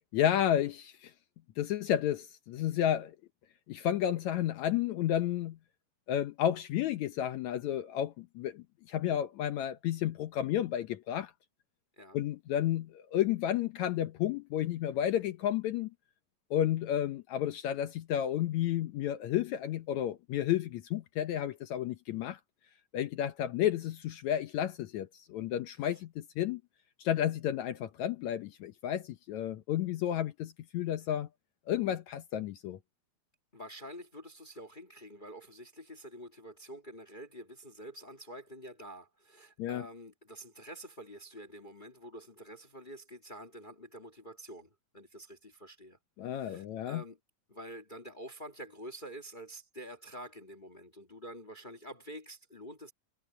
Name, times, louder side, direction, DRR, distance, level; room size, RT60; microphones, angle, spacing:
voice 1, 0.1-1.1 1.6-3.2 3.7-5.6 6.1-11.3 12.1-15.9 16.5-22.4 22.9-26.6 27.0-31.3 31.7-32.8 39.6-39.9 46.2-47.0, left 11 dB, 70° left, 1.8 m, -32 dB
voice 2, 33.5-46.0 46.3-47.2 47.5-52.9, equal, 35° left, 0.7 m, -47 dB
omnidirectional pair, 4.1 m